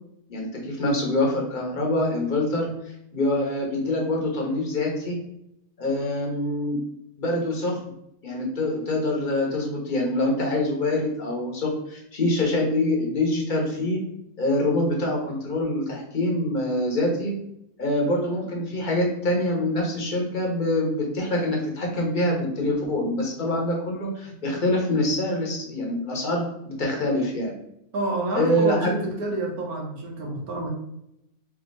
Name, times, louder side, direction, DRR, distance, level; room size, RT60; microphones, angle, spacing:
voice 1, 0.3-2.7 3.1-5.2 5.8-6.8 7.2-7.8 8.2-14.0 14.4-17.3 17.8-27.5 28.3-29.0, left 1 dB, 40° left, -1 dB, 1.0 m, -25 dB
voice 2, 27.9-30.7, right 2 dB, 90° right, 0 dB, 1.5 m, -28 dB
3.5 x 2.7 x 3.9 m, 0.79 s
omnidirectional pair, 1.5 m